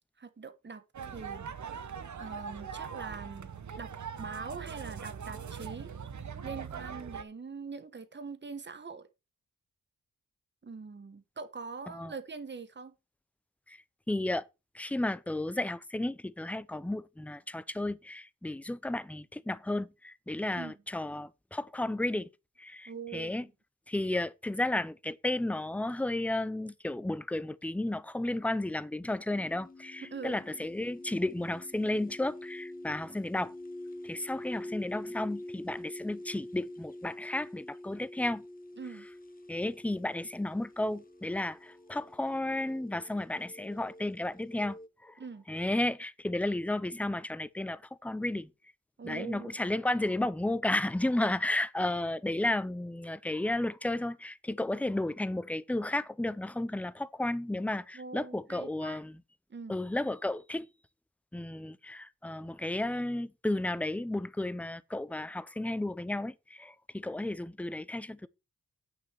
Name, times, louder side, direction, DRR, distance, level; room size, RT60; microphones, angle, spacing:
voice 1, 0.2-1.4 2.2-3.9 4.2-5.9 6.4-9.1 10.6-12.9 20.5-20.8 22.9-23.5 30.0-30.4 38.8-39.1 45.2-45.4 49.0-49.7 57.9-59.0 59.5-59.8, right 5 dB, 35° right, 1.2 m, -43 dB
sound 1, 0.9-7.2, right 7 dB, 60° right, 1.0 m, -41 dB
voice 2, 14.1-14.5 14.7-22.3 22.6-23.5 23.9-33.5 34.0-38.4 39.5-45.2 45.5-48.5 49.0-59.2 59.7-60.7 61.3-68.3, left 1 dB, 5° left, 0.5 m, -33 dB
sound 2, 29.3-44.9, left 1 dB, 25° left, 0.8 m, -46 dB
9.7 x 5.4 x 5.9 m
wide cardioid pair, 165°, 33 cm